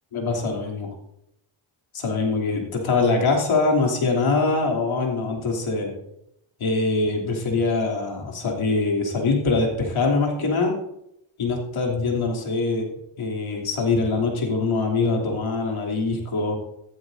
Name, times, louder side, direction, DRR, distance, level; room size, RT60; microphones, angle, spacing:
voice 1, 0.1-0.9 1.9-5.9 6.6-10.8 11.4-12.9 13.2-16.6, left 3 dB, 85° left, -1 dB, 3.1 m, -23 dB
14.5 x 13.0 x 2.7 m, 0.80 s
cardioid pair, 65°, 48 cm